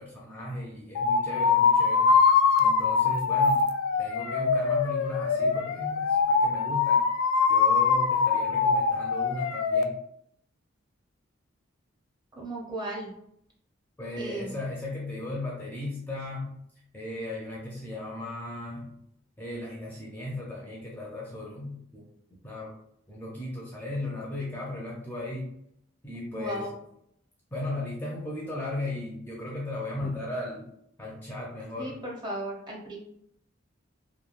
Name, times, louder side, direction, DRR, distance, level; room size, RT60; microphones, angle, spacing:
voice 1, 0.0-2.1 2.6-3.6 4.0-7.0 7.5-9.9 14.0-16.6 16.9-19.0 19.4-22.7 23.1-25.5 26.0-26.7 27.5-30.7 31.0-32.0, left 1 dB, 10° left, -4 dB, 0.5 m, -36 dB
sound 1, 1.0-9.8, left 5 dB, 90° left, 0.3 m, -23 dB
voice 2, 12.4-13.1 14.2-14.6 26.3-26.7 30.0-30.1 31.8-33.0, right 1 dB, 20° right, -2 dB, 0.7 m, -36 dB
3.1 x 2.3 x 2.4 m, 0.72 s
head